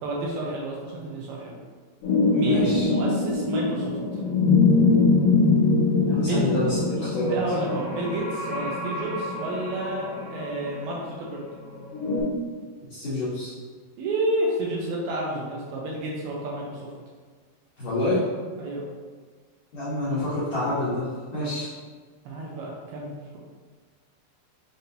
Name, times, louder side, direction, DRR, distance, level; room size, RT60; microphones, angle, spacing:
voice 1, 0.0-1.6 2.3-4.2 6.1-6.4 7.2-11.4 14.0-16.9 18.6-18.9 22.3-23.4, right 2 dB, 80° right, -3 dB, 2.4 m, -30 dB
sound 1, 2.0-12.2, left 3 dB, 60° left, 2.6 m, -23 dB
voice 2, 2.4-2.9 6.0-7.3 12.9-13.5 17.8-18.2 19.7-21.7, left 1 dB, 75° left, -11 dB, 1.5 m, -27 dB
6.9 x 2.8 x 2.6 m, 1.5 s
omnidirectional pair, 4.8 m